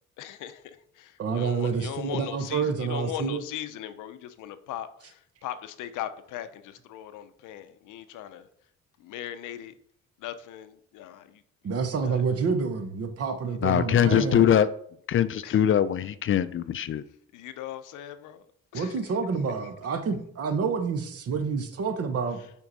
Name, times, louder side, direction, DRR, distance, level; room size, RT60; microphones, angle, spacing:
voice 1, 0.2-8.5 9.0-9.8 10.2-12.2 13.5-13.6 15.4-15.6 17.3-18.4 18.7-19.2 19.6-19.7 22.4-22.5, left 11 dB, 85° left, 11 dB, 0.6 m, -39 dB
voice 2, 1.2-3.4 11.6-14.5 18.7-22.4, right 5 dB, 50° right, 8 dB, 1.0 m, -28 dB
voice 3, 13.6-14.7 15.1-17.0, left 9 dB, 45° left, 14 dB, 0.4 m, -22 dB
5.9 x 4.6 x 4.0 m, 0.67 s
cardioid pair, 90°, 30 cm